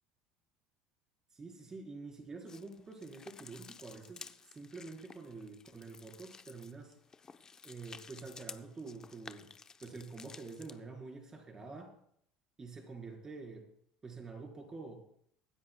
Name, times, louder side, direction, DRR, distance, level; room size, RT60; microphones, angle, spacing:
voice 1, 1.3-7.0 7.6-9.5 9.8-11.9 12.6-13.7 14.0-15.0, right 3 dB, 25° right, 1 dB, 4.4 m, -47 dB
sound 1, 2.5-10.8, left 5 dB, 30° left, 0.8 m, -53 dB
24.5 x 10.0 x 2.3 m, 0.67 s
supercardioid pair, 85°, 2 cm